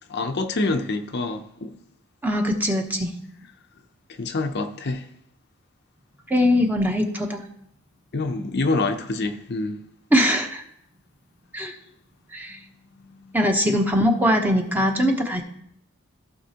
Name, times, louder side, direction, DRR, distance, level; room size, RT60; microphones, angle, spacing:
voice 1, 0.1-1.7 4.2-5.0 8.1-9.8, left 3 dB, 50° left, 0.6 m, -26 dB
voice 2, 2.2-3.1 6.3-7.5 10.1-10.6 11.5-11.7 12.3-12.6 13.3-15.4, equal, 10° right, 0.9 m, -21 dB
15.0 x 5.8 x 2.9 m
head